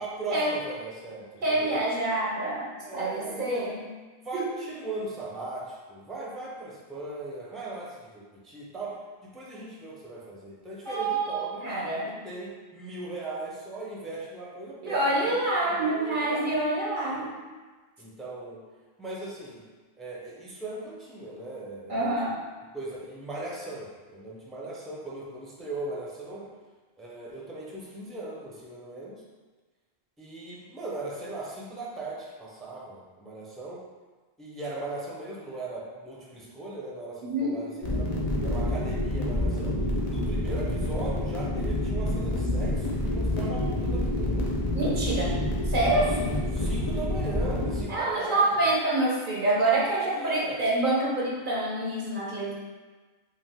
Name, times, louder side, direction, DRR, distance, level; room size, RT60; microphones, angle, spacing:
voice 1, 0.0-1.8 2.8-3.6 4.2-11.7 12.2-16.6 17.1-17.3 18.0-18.6 19.0-19.6 20.0-22.1 22.7-26.5 27.0-29.2 30.2-33.8 34.4-38.2 38.4-39.8 40.1-44.5 45.9-48.6 49.9-50.6, right 2 dB, ahead, -5 dB, 0.7 m, -38 dB
voice 2, 1.4-3.8 4.3-4.5 10.9-12.2 14.8-17.3 21.9-22.4 37.2-37.6 44.7-45.4 45.6-46.1 47.9-52.5, right 2 dB, 55° right, -4 dB, 0.8 m, -27 dB
sound 1, 37.8-47.8, left 1 dB, 40° left, 0.8 m, -28 dB
5.5 x 2.7 x 3.6 m, 1.3 s
omnidirectional pair, 1.1 m